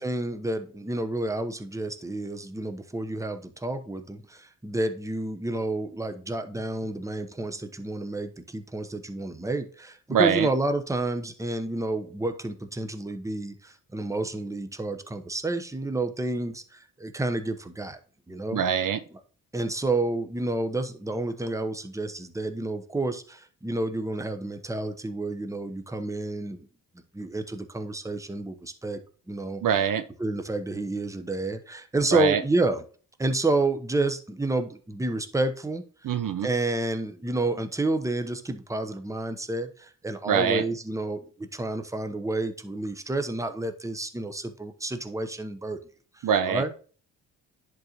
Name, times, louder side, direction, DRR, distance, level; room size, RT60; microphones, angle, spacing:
voice 1, 0.0-18.0 18.3-18.6 19.5-26.7 27.1-29.0 29.3-29.6 30.2-32.8 33.2-35.8 36.4-45.8 46.2-46.7, right 2 dB, 5° right, 0.9 m, -30 dB
voice 2, 10.1-10.5 18.5-19.0 29.6-30.0 32.1-32.4 36.0-36.5 40.3-40.6 46.2-46.6, right 8 dB, 50° right, 0.6 m, -24 dB
10.5 x 3.9 x 2.9 m
hypercardioid pair, 45°, 43 cm